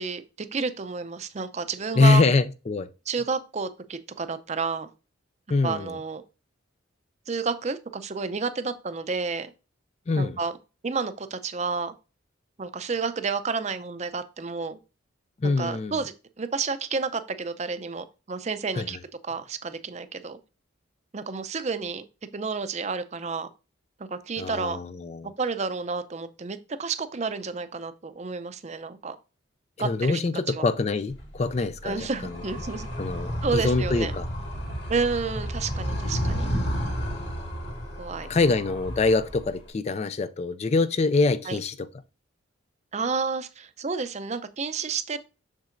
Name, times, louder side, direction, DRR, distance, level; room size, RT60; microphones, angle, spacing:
voice 1, 0.0-2.2 3.1-4.9 5.6-6.2 7.3-9.5 10.2-10.6 10.8-11.9 12.6-14.8 15.4-19.0 19.2-20.4 21.1-22.0 22.3-23.5 24.0-24.8 25.2-29.2 29.8-30.2 30.5-30.7 31.8-32.9 33.4-34.1 34.9-36.5 38.0-38.5 41.5-41.6 42.9-45.2, right 4 dB, 35° right, 0.5 m, -30 dB
voice 2, 2.0-2.9 5.5-6.0 10.1-10.4 15.4-16.0 18.8-19.0 24.4-25.3 29.8-32.4 33.0-34.3 38.2-41.9, left 3 dB, 35° left, 0.3 m, -24 dB
Animal, 31.1-39.7, equal, 55° left, 2.5 m, -32 dB
7.2 x 6.6 x 2.5 m
head